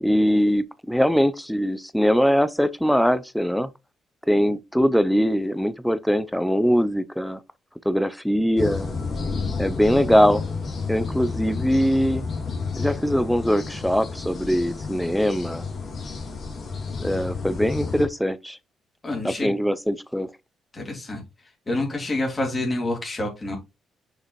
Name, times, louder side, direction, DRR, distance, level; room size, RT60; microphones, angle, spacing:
voice 1, 0.0-3.7 4.3-7.4 7.9-8.9 9.6-10.4 10.9-12.2 12.7-15.6 17.0-18.6 19.2-20.3, equal, ahead, 0.5 m, -22 dB
sound 1, 8.6-18.1, left 4 dB, 50° left, 2.4 m, -30 dB
voice 2, 19.0-19.5 20.7-21.2 21.7-23.6, left 2 dB, 25° left, 3.3 m, -27 dB
6.7 x 6.2 x 3.1 m
cardioid pair, 90°, 0 cm